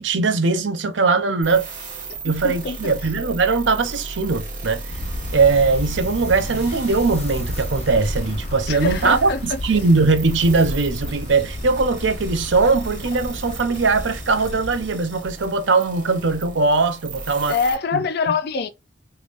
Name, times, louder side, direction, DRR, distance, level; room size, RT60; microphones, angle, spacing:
voice 1, 0.0-1.7 2.2-4.8 5.3-17.6 17.9-18.0, right 4 dB, 75° right, 0.7 m, -20 dB
sound 1, 1.4-17.7, right 3 dB, 45° right, 1.4 m, -36 dB
voice 2, 2.4-2.8 8.7-9.6 17.5-18.7, left 5 dB, 55° left, 0.4 m, -24 dB
sound 2, 4.9-14.8, left 1 dB, 35° left, 0.8 m, -31 dB
3.4 x 3.3 x 2.5 m
head